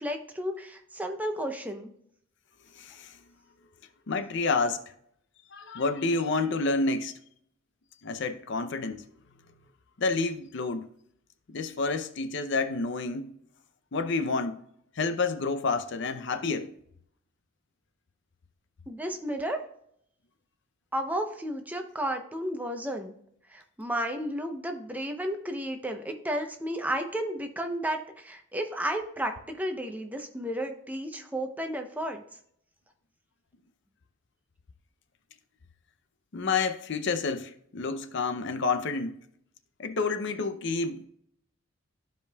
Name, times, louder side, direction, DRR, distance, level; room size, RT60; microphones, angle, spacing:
voice 1, 0.0-1.9 18.9-19.6 20.9-23.1 23.5-32.2, equal, 10° right, 0.7 m, -33 dB
voice 2, 2.8-3.2 4.1-4.8 5.5-7.2 8.0-9.1 10.0-10.9 11.5-13.3 13.9-14.6 15.0-16.7 36.3-39.2 39.8-41.1, left 3 dB, 60° left, 0.5 m, -29 dB
13.5 x 5.1 x 2.3 m
head